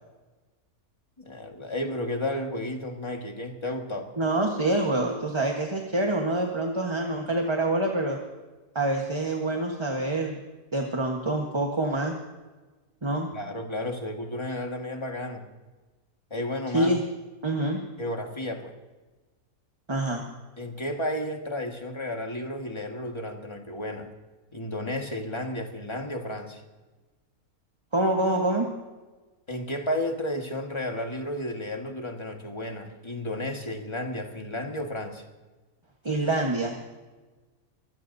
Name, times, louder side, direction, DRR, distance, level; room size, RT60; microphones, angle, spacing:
voice 1, 1.2-4.1 13.3-15.4 16.3-17.0 18.0-18.7 20.6-24.1 24.5-26.6 29.5-35.2, left 1 dB, 20° left, 3 dB, 1.7 m, -32 dB
voice 2, 4.2-8.2 8.7-10.4 10.7-12.1 13.0-13.3 16.7-17.0 17.4-17.8 19.9-20.2 27.9-28.7 36.0-36.7, right 2 dB, 20° right, 1 dB, 1.2 m, -26 dB
24.5 x 16.0 x 2.7 m, 1.2 s
omnidirectional pair, 1.6 m